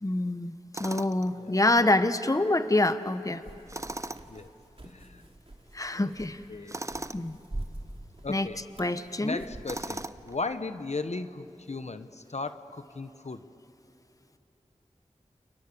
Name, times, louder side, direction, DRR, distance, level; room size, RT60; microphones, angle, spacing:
voice 1, 0.0-0.5 0.8-3.4 5.7-6.4 7.1-7.4 8.3-8.5 8.8-9.4, left 2 dB, 25° left, 11 dB, 1.0 m, -26 dB
Tools, 0.7-1.3 3.7-4.4 6.7-7.2 9.7-10.4, right 2 dB, 25° right, 0.8 m, -37 dB
sound 1, 3.4-10.2, right 1 dB, 50° right, 3.2 m, -45 dB
voice 2, 4.8-5.3 5.9-6.1 6.5-6.8 8.2-8.6 9.2-13.4, left 3 dB, 60° left, 10 dB, 1.0 m, -36 dB
30.0 x 29.0 x 6.9 m, 2.8 s
wide cardioid pair, 40°, 13 cm